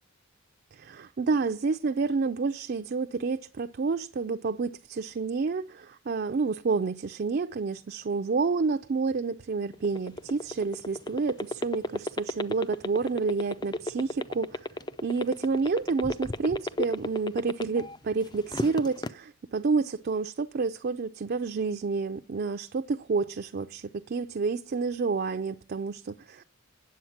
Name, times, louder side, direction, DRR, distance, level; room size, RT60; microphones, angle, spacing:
voice 1, 0.7-14.6 15.0-26.4, right 4 dB, 45° right, 0.4 m, -29 dB
sound 1, 9.7-18.0 18.3-19.1, left 1 dB, 20° left, 0.4 m, -31 dB
9.3 x 7.8 x 5.7 m
head